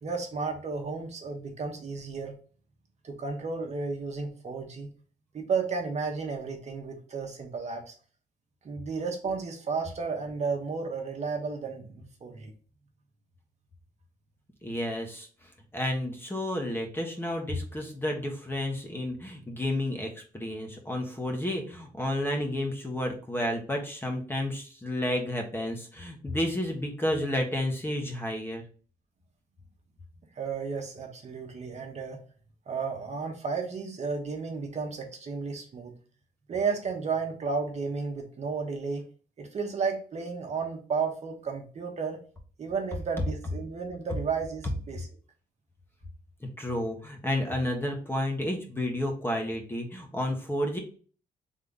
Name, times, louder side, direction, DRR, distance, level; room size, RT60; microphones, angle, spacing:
voice 1, 0.0-2.3 3.0-4.9 5.3-7.9 8.6-12.5 30.3-32.2 32.7-35.9 36.5-39.0 39.4-42.2 42.6-45.1, right 5 dB, 45° right, 3 dB, 1.2 m, -33 dB
voice 2, 14.6-15.3 15.7-28.6 46.4-50.8, left 1 dB, 15° left, 2 dB, 1.2 m, -31 dB
3.7 x 3.3 x 3.8 m, 0.40 s
cardioid pair, 85°, 16 cm